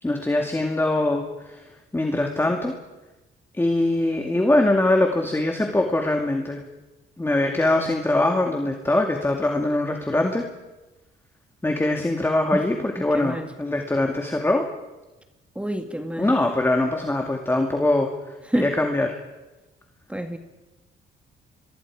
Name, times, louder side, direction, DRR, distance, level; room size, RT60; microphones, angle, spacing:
voice 1, 0.0-2.8 3.5-6.6 7.2-10.5 11.6-14.7 16.2-19.2, left 2 dB, 10° left, 3 dB, 2.3 m, -23 dB
voice 2, 13.0-13.5 15.6-16.3 18.5-18.7 20.1-20.4, right 1 dB, 5° right, 6 dB, 1.9 m, -27 dB
29.5 x 23.5 x 4.9 m, 1.1 s
cardioid pair, 90°, 20 cm